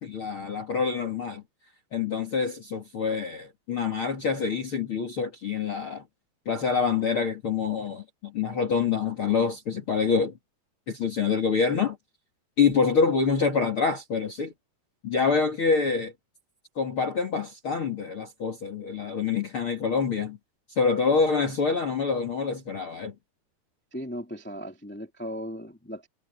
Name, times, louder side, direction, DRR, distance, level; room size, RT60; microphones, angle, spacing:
voice 1, 0.0-1.4 1.9-6.0 6.5-10.3 10.9-12.0 12.6-14.5 15.0-16.1 16.8-20.4 20.8-23.1, left 5 dB, 40° left, 2.5 m, -26 dB
voice 2, 23.9-26.1, equal, 10° left, 0.6 m, -37 dB
omnidirectional pair, 4.6 m